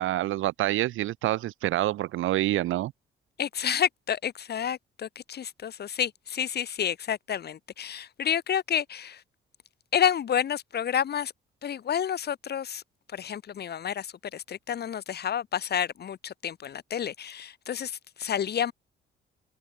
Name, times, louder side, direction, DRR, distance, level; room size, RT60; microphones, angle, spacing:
voice 1, 0.0-2.9, right 15 dB, 85° right, 1.6 m, -27 dB
voice 2, 3.4-9.2 9.9-11.3 11.6-12.8 13.1-18.7, left 9 dB, 55° left, 1.8 m, -30 dB
cardioid pair, 90°, 20 cm